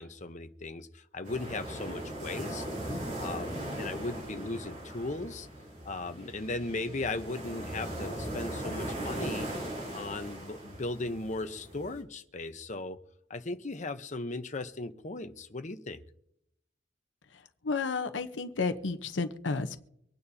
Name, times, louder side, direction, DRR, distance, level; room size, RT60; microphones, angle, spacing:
voice 1, 0.0-5.5 5.8-9.5 9.9-13.0 13.3-16.0, left 2 dB, 40° left, 9 dB, 0.9 m, -37 dB
sound 1, 1.2-12.0, right 1 dB, 45° right, 3.7 m, -39 dB
voice 2, 17.3-19.8, left 4 dB, 80° left, 8 dB, 0.9 m, -32 dB
25.0 x 9.4 x 2.8 m, 0.77 s
head